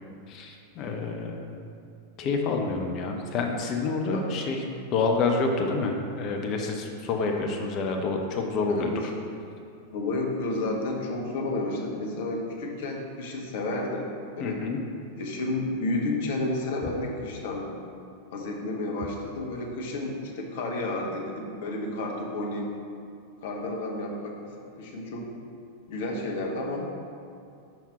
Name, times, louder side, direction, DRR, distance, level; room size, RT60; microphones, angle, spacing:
voice 1, 0.3-1.5 2.2-4.6 4.9-9.1 14.4-14.8, left 3 dB, 35° left, 2 dB, 0.7 m, -28 dB
voice 2, 8.7-9.1 9.9-14.1 14.4-14.6 15.1-17.7 18.3-22.7 23.4-25.3 25.9-26.9, left 2 dB, 55° left, 0 dB, 1.1 m, -31 dB
5.9 x 5.6 x 4.1 m, 2.4 s
figure-of-eight pair, 90°, 0 cm